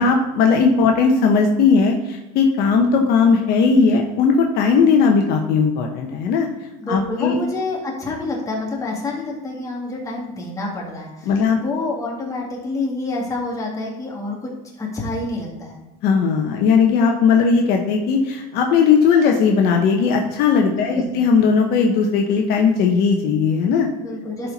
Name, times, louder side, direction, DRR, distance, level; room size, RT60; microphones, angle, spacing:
voice 1, 0.0-6.5 6.9-7.4 11.3-11.6 16.0-23.9, left 5 dB, 55° left, 2 dB, 1.0 m, -17 dB
voice 2, 6.8-14.5 14.8-15.8 20.7-21.1 24.0-24.5, left 2 dB, 15° left, -2 dB, 2.2 m, -28 dB
11.0 x 4.4 x 4.1 m, 1.1 s
supercardioid pair, 125°, 19 cm